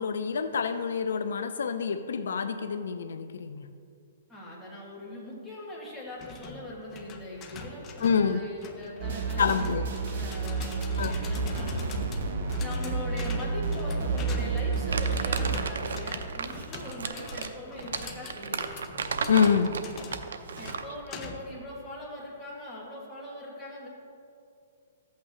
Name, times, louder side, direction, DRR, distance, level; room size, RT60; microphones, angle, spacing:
voice 1, 0.0-3.7 8.0-8.4 9.4-9.9 11.0-11.1 19.3-19.7, left 6 dB, 80° left, 10 dB, 0.5 m, -26 dB
voice 2, 4.3-9.7 10.0-11.7 12.4-18.7 20.6-23.9, left 1 dB, ahead, -8 dB, 1.9 m, -41 dB
sound 1, 6.2-21.6, left 4 dB, 20° left, 0.6 m, -45 dB
sound 2, 9.0-15.7, right 4 dB, 50° right, 1.0 m, -30 dB
Crumpling crinkling, 14.9-21.0, right 5 dB, 85° right, 0.6 m, -34 dB
13.5 x 8.4 x 3.0 m, 2.4 s
hypercardioid pair, 165°, 0 cm